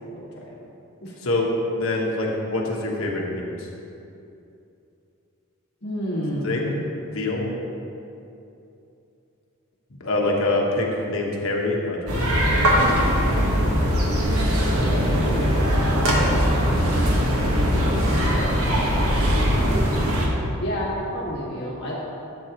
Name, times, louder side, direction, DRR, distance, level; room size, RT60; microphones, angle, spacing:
voice 1, 0.1-0.5 1.0-1.2 5.8-6.9 12.6-13.1 14.5-15.4 16.1-16.3 16.6-19.4 20.6-21.9, equal, 50° left, -6 dB, 1.9 m, -32 dB
voice 2, 1.7-3.7 6.4-6.6 7.0-7.5 10.0-12.2, left 2 dB, 70° left, -1 dB, 1.3 m, -25 dB
sound 1, 12.1-20.3, equal, 90° right, 1.5 m, -20 dB
12.0 x 8.2 x 3.0 m, 2.8 s
head